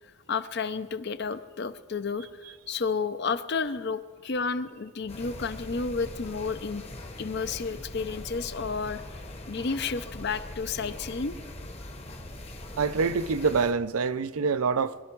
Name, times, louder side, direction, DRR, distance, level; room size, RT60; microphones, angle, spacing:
voice 1, 0.3-2.3 2.7-6.8 7.2-9.0 9.5-11.4, left 4 dB, 50° left, 0.6 m, -31 dB
sound 1, 5.1-13.7, left 1 dB, 30° left, 1.0 m, -41 dB
voice 2, 12.8-15.0, right 5 dB, 85° right, 0.5 m, -26 dB
22.0 x 12.0 x 4.6 m
head